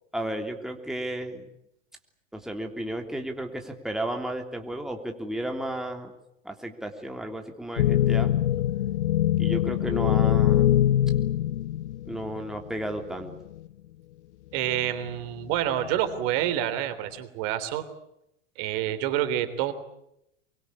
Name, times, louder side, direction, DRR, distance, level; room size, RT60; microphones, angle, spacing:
voice 1, 0.1-1.4 2.3-6.1 6.4-8.3 9.4-10.7 12.1-13.3, right 1 dB, ahead, 3 dB, 3.2 m, -33 dB
sound 1, 7.8-12.5 13.3-13.4 14.6-15.1 15.7-16.2, left 12 dB, 65° left, 1.0 m, -23 dB
voice 2, 14.5-17.9 18.6-19.7, right 12 dB, 50° right, 10 dB, 3.5 m, -28 dB
24.5 x 23.5 x 8.5 m, 0.81 s
hypercardioid pair, 100°, 37 cm